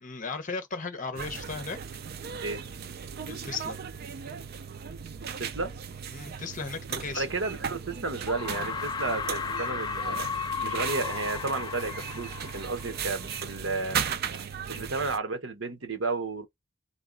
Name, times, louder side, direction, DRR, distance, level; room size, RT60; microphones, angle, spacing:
voice 1, 0.0-1.8 3.3-3.8 6.1-7.3 14.7-14.9, left 4 dB, 40° left, 0.9 m, -36 dB
sound 1, 1.2-15.2, right 7 dB, 50° right, 0.4 m, -37 dB
voice 2, 5.4-5.7 7.1-10.3 10.6-14.0 14.7-16.5, right 3 dB, 75° right, 1.1 m, -32 dB
sound 2, 7.4-7.5 8.3-13.5, left 6 dB, 20° left, 0.3 m, -35 dB
3.8 x 3.0 x 3.9 m
head